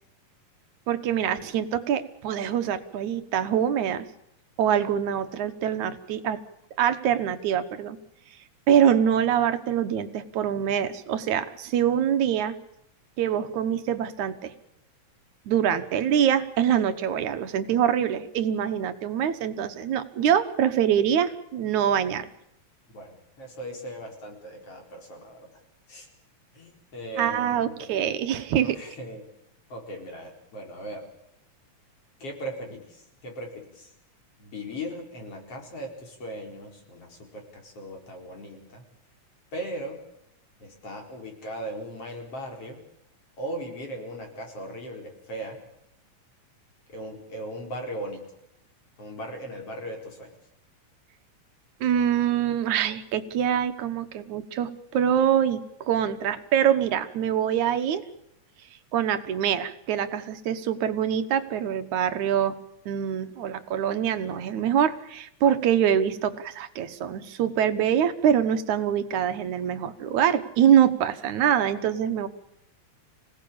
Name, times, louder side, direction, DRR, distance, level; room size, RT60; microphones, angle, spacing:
voice 1, 0.9-4.0 4.6-6.4 6.8-8.0 8.7-12.6 13.2-14.5 15.5-22.3 27.2-28.8 51.8-58.1 58.9-62.6 62.9-72.3, right 9 dB, 80° right, 10 dB, 2.6 m, -24 dB
voice 2, 22.9-25.6 25.9-26.1 26.5-27.8 28.6-29.3 29.7-31.1 32.2-33.9 34.4-38.9 39.5-40.0 40.6-42.8 43.4-45.6 46.9-48.2 49.0-50.3, right 1 dB, 50° left, 2 dB, 5.3 m, -38 dB
26.5 x 18.0 x 8.7 m, 0.78 s
omnidirectional pair, 3.4 m